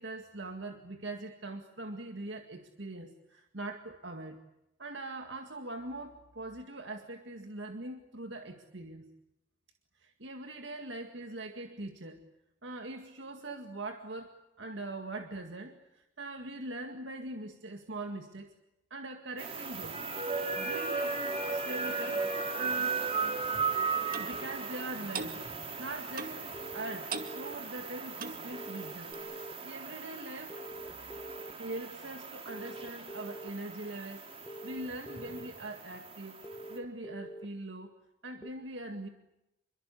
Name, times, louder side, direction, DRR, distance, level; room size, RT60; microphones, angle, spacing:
voice 1, 0.0-4.4 4.8-9.1 10.0-12.2 12.6-18.5 18.9-20.0 20.5-22.3 22.5-23.1 24.1-26.4 26.7-29.1 29.6-30.6 31.6-37.9 38.2-39.1, right 2 dB, 80° right, 5 dB, 2.0 m, -42 dB
sound 1, 19.4-36.8, right 4 dB, 30° right, 3.0 m, -37 dB
Clock, 24.1-24.3 25.1-25.3 26.1-26.4 27.1-27.4 28.1-28.4 29.1-29.2, right 5 dB, 45° right, 2.2 m, -38 dB
sound 2, 26.5-27.6 28.5-29.5 30.5-31.5 32.5-33.5 34.5-35.5 36.4-37.5 38.4-38.5, right 1 dB, 15° left, 1.1 m, -45 dB
28.0 x 23.0 x 8.5 m, 0.89 s
head